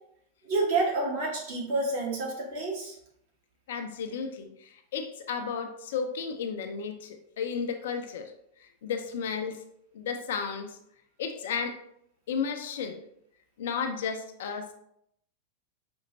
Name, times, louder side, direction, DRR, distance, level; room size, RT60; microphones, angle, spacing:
voice 1, 0.4-2.9, right 3 dB, 55° right, -3 dB, 1.4 m, -29 dB
voice 2, 3.7-8.3 8.8-9.6 9.9-10.8 11.2-11.8 12.3-13.0 13.6-14.7, left 6 dB, 60° left, 6 dB, 0.5 m, -33 dB
5.3 x 2.8 x 2.7 m, 0.73 s
figure-of-eight pair, 90°, 0 cm